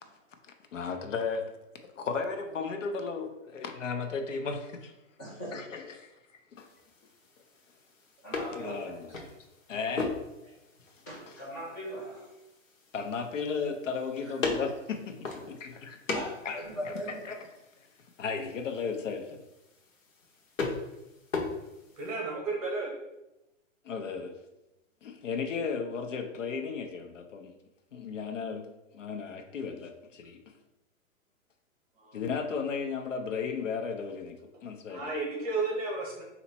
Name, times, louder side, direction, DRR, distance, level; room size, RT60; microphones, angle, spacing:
voice 1, 0.7-1.5 1.9-4.9 5.5-6.1 6.6-6.7 8.5-9.1 9.7-10.1 11.3-11.4 12.9-16.2 16.4-17.5 18.2-19.4 23.8-24.3 25.0-27.5 27.9-28.7 28.9-30.4 32.1-35.1, left 5 dB, 70° left, 6 dB, 0.8 m, -35 dB
voice 2, 5.2-5.6 8.2-9.2 11.1-12.3 16.1-17.2, equal, 15° left, -5 dB, 0.7 m, -39 dB
sound 1, 6.6-22.1, left 3 dB, 90° left, 1.2 m, -39 dB
voice 3, 22.0-22.9 32.0-32.2 34.9-36.2, right 3 dB, 30° right, -1 dB, 1.1 m, -33 dB
4.1 x 2.9 x 4.3 m, 0.94 s
hypercardioid pair, 175°, 39 cm